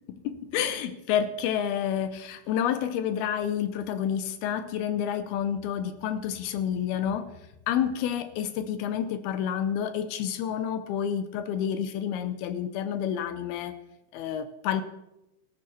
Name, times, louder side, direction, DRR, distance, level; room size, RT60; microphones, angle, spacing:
voice 1, 0.1-7.3 7.7-13.7 14.1-14.8, left 9 dB, 75° left, 11 dB, 2.4 m, -29 dB
18.0 x 13.0 x 4.3 m, 0.93 s
omnidirectional pair, 5.0 m